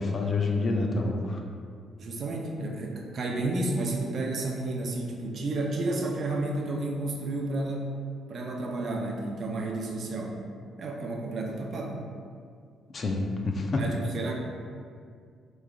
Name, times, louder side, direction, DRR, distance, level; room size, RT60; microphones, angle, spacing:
voice 1, 0.0-1.4 12.9-13.2 13.5-13.8, left 3 dB, 45° left, 2 dB, 0.5 m, -27 dB
voice 2, 2.0-7.9 8.3-10.4 10.8-12.0 13.8-14.3, right 2 dB, 55° right, 1 dB, 0.5 m, -31 dB
4.9 x 3.1 x 2.3 m, 2.2 s
cardioid pair, 90°, 0 cm